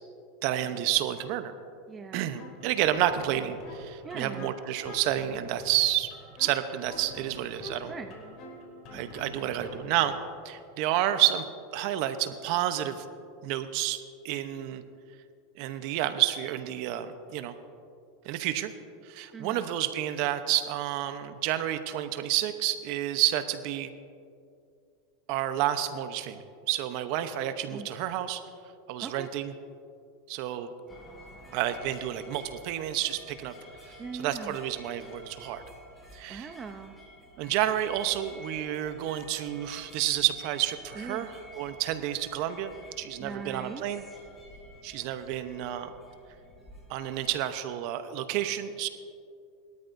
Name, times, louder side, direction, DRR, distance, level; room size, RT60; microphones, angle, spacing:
voice 1, 0.4-1.5 2.1-6.1 6.4-7.9 8.9-10.1 10.4-11.4 11.7-13.0 13.4-14.0 14.2-14.8 15.6-17.5 18.2-18.7 19.0-23.9 25.3-28.4 28.9-29.5 30.3-30.7 31.5-33.5 33.9-35.6 36.1-36.6 37.4-44.0 44.8-45.9 46.9-48.9, right 12 dB, 60° right, 10 dB, 0.8 m, -30 dB
voice 2, 1.9-2.2 4.0-4.5 7.9-8.1 19.3-19.7 27.7-27.9 29.0-29.3 34.0-34.6 36.3-36.9 41.0-41.3 43.2-43.9, right 5 dB, 25° right, 7 dB, 0.7 m, -40 dB
sound 1, 2.4-10.4, left 2 dB, 50° left, 3.1 m, -46 dB
sound 2, 30.9-47.3, equal, 20° left, 3.4 m, -51 dB
20.5 x 13.0 x 2.7 m, 2.4 s
supercardioid pair, 115°, 0 cm